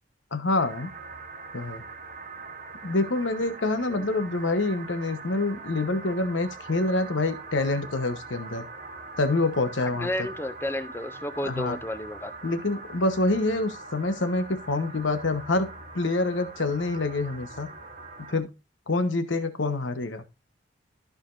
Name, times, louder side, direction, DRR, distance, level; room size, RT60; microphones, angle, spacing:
voice 1, 0.3-0.9 1.5-1.8 2.8-8.7 9.2-10.3 11.4-11.8 12.4-15.7 15.9-17.7 18.3-18.5 18.9-20.2, left 2 dB, 90° left, 1.1 m, -26 dB
sound 1, 0.6-18.4, right 3 dB, 40° right, 1.1 m, -42 dB
voice 2, 9.8-12.5, left 1 dB, 10° left, 0.5 m, -32 dB
14.5 x 5.1 x 2.6 m
head